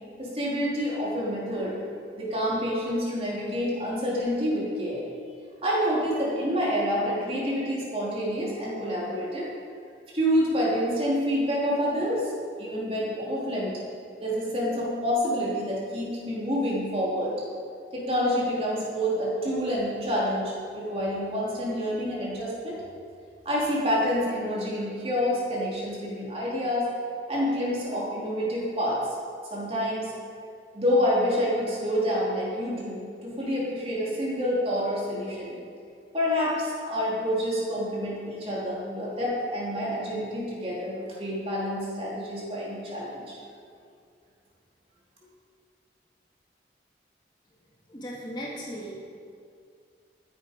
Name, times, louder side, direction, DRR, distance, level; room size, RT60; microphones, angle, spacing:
voice 1, 0.2-1.7 2.1-5.0 5.6-9.5 10.1-12.3 12.6-13.7 14.2-17.3 17.9-22.8 23.4-26.9 27.3-29.0 29.5-30.1 30.7-35.6 36.1-43.4, equal, 30° right, -6 dB, 3.0 m, -28 dB
voice 2, 47.9-48.9, equal, 25° left, -4 dB, 1.8 m, -36 dB
13.5 x 9.5 x 5.1 m, 2.3 s
head